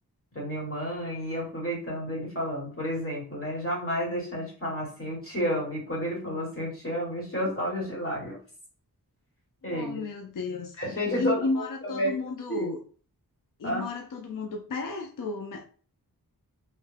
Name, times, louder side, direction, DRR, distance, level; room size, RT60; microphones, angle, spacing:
voice 1, 0.3-8.4 9.6-10.0 10.8-12.2 12.5-12.7 13.6-13.9, equal, 35° left, -2 dB, 1.5 m, -31 dB
voice 2, 9.6-10.8 11.2-12.8 13.6-15.6, left 3 dB, 55° left, 3 dB, 0.5 m, -33 dB
3.2 x 2.2 x 3.2 m, 0.41 s
wide cardioid pair, 65°, 38 cm